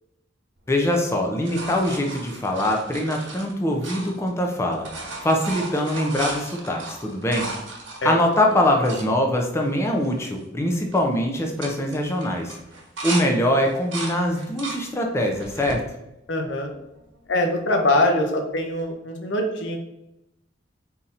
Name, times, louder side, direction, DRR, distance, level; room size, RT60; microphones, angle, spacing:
voice 1, 0.7-4.9 5.2-7.5 8.0-12.6 13.0-15.8, left 1 dB, 15° left, 1 dB, 0.5 m, -23 dB
sound 1, 0.8-4.5 4.7-9.1 9.7-9.8 10.0-10.4 10.7-11.0 11.4-13.3 13.6-14.8 15.3-15.8 16.4-17.2 18.8-18.9, right 3 dB, 85° right, 1.3 m, -35 dB
voice 2, 16.3-16.7 17.3-19.8, left 1 dB, 75° left, 3 dB, 0.8 m, -23 dB
3.8 x 2.8 x 4.1 m, 0.88 s
head